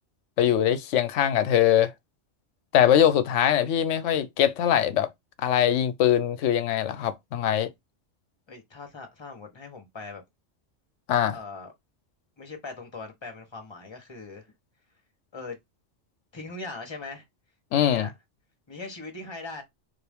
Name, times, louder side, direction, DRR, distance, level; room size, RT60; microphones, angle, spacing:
voice 1, 0.4-1.9 2.7-5.1 5.4-7.7 11.1-11.4 17.7-18.1, left 10 dB, 80° left, 0.9 m, -22 dB
voice 2, 8.5-10.2 11.3-11.7 12.4-14.5 15.3-15.6 16.3-17.2 17.8-18.1 18.7-19.6, left 3 dB, 25° left, 0.9 m, -40 dB
3.7 x 2.6 x 3.4 m
omnidirectional pair, 1.2 m